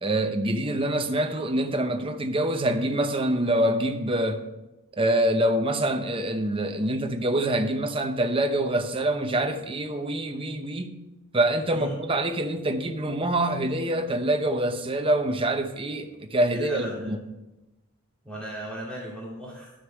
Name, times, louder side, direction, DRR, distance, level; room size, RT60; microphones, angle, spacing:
voice 1, 0.0-4.4 5.0-10.9 11.3-17.2, right 1 dB, 25° right, 0.7 m, -25 dB
voice 2, 16.5-17.1 18.2-19.7, right 1 dB, 5° left, 2.5 m, -36 dB
11.0 x 6.5 x 4.6 m
head